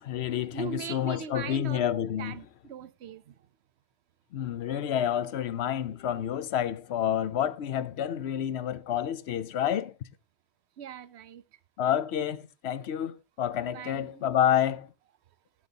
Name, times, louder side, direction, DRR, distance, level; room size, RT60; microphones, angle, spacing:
voice 1, 0.0-2.4 4.3-9.9 11.8-14.9, left 10 dB, 80° left, 0.9 m, -29 dB
voice 2, 0.5-1.9 2.2-3.4 10.8-11.4 13.6-14.2, right 9 dB, 90° right, 1.0 m, -40 dB
12.0 x 10.5 x 2.8 m
omnidirectional pair, 1.1 m